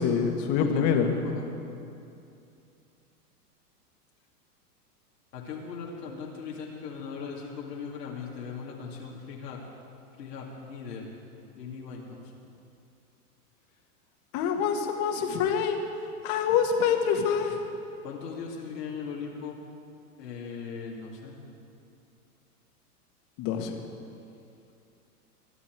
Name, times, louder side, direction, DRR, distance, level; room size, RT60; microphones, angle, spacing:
voice 1, 0.0-1.1 14.3-15.8 16.2-17.6 23.4-23.7, left 7 dB, 40° left, 4 dB, 1.8 m, -25 dB
voice 2, 0.6-1.5 5.3-9.6 10.2-11.0 11.6-12.2 18.0-19.6 20.2-21.3, left 6 dB, 85° left, -3 dB, 2.7 m, -38 dB
22.0 x 11.5 x 4.7 m, 2.6 s
hypercardioid pair, 125°, 47 cm